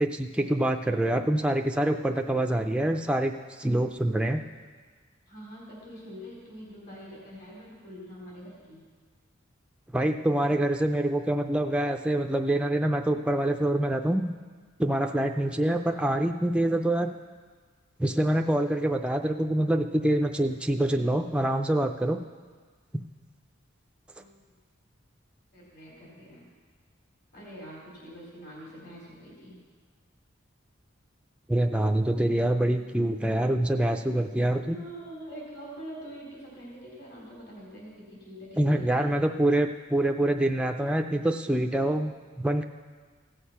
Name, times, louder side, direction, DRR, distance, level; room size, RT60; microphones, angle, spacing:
voice 1, 0.0-4.4 9.9-14.3 14.8-17.1 18.0-22.2 31.5-34.8 38.6-42.6, right 1 dB, 5° right, 4 dB, 0.4 m, -25 dB
voice 2, 5.3-8.8 24.2-24.5 25.5-26.5 27.3-29.6 34.5-39.2, equal, 50° left, -5 dB, 3.9 m, -44 dB
16.0 x 6.6 x 5.7 m, 1.5 s
head